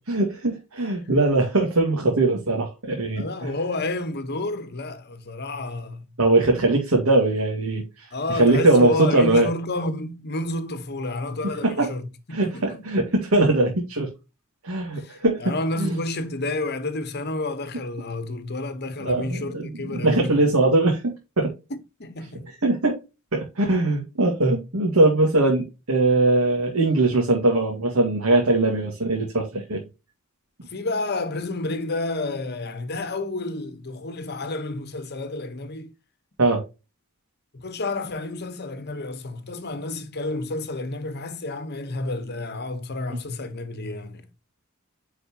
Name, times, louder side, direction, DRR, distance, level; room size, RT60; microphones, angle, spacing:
voice 1, 0.1-3.5 6.2-9.5 11.6-11.9 12.3-14.1 14.6-15.4 15.8-16.0 19.0-19.6 19.9-21.5 22.6-23.0 23.3-29.8 36.4-36.6, right 2 dB, 90° right, 2.2 m, -21 dB
voice 2, 3.2-6.0 8.1-12.9 15.0-20.4 22.0-22.5 30.6-35.9 37.5-44.2, left 2 dB, 50° left, 1.2 m, -30 dB
9.7 x 4.9 x 3.0 m
head